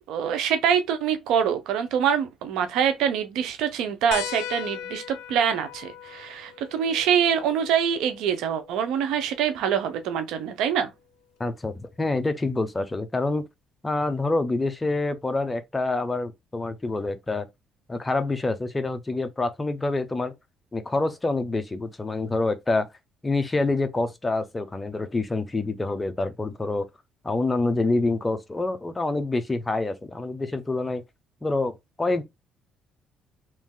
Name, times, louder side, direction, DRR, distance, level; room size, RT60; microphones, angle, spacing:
voice 1, 0.1-10.9, right 8 dB, 80° right, 0.7 m, -25 dB
sound 1, 4.1-9.2 10.7-10.8 12.5-12.6, left 10 dB, 80° left, 0.6 m, -39 dB
voice 2, 11.4-13.4 13.8-17.5 17.9-20.3 20.7-22.9 23.2-26.9 27.2-31.0 31.4-31.7 32.0-32.2, left 2 dB, 20° left, 0.7 m, -26 dB
3.0 x 2.7 x 3.7 m
supercardioid pair, 75°, 0 cm